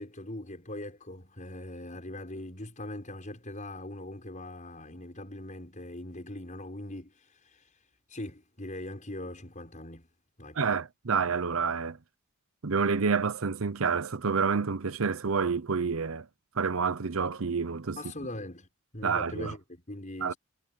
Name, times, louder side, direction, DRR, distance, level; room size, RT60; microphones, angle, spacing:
voice 1, 0.0-10.1 10.4-10.6 18.0-18.7 18.9-20.4, left 1 dB, 35° left, 6.0 m, -41 dB
voice 2, 10.6-12.0 12.6-16.3 16.6-18.0 19.0-19.5 20.2-20.3, right 5 dB, 75° right, 0.8 m, -28 dB
head